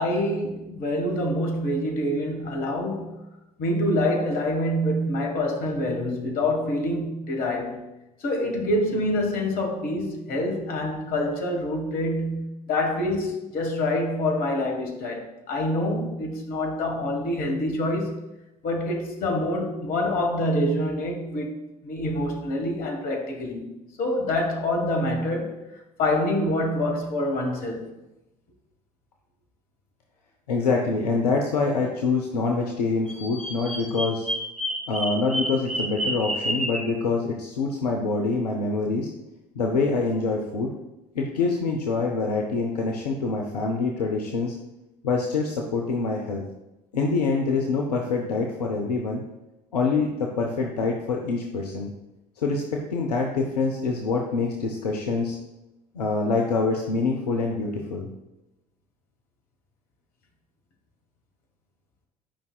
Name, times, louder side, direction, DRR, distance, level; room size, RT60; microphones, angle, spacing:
voice 1, 0.0-3.2 3.6-7.8 8.2-18.2 18.6-21.6 21.8-27.9, left 1 dB, 45° left, 1.5 m, -26 dB
voice 2, 30.5-34.3 34.9-39.1 39.6-40.7 41.1-44.6 45.0-46.4 46.9-49.2 49.7-51.9 52.4-55.4 55.9-58.1, left 4 dB, 75° left, 0.7 m, -25 dB
Bird vocalization bird call bird song, 33.1-36.9, equal, 5° left, 2.4 m, -29 dB
10.0 x 5.3 x 2.3 m
figure-of-eight pair, 60°, 21 cm